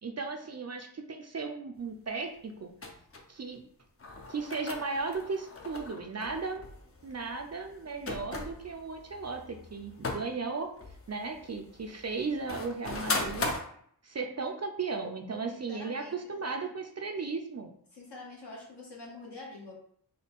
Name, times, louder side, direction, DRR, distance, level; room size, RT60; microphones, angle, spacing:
voice 1, 0.0-2.7 3.3-3.6 4.3-6.6 7.0-10.7 11.1-13.5 14.0-17.7, right 4 dB, 40° right, 4 dB, 0.4 m, -36 dB
sound 1, 2.8-3.2 4.0-10.3 10.7-13.6, left 3 dB, 35° left, 0.5 m, -39 dB
voice 2, 15.5-16.4 17.9-19.8, left 2 dB, 70° left, -4 dB, 1.4 m, -46 dB
4.0 x 2.3 x 3.5 m, 0.64 s
wide cardioid pair, 95°, 42 cm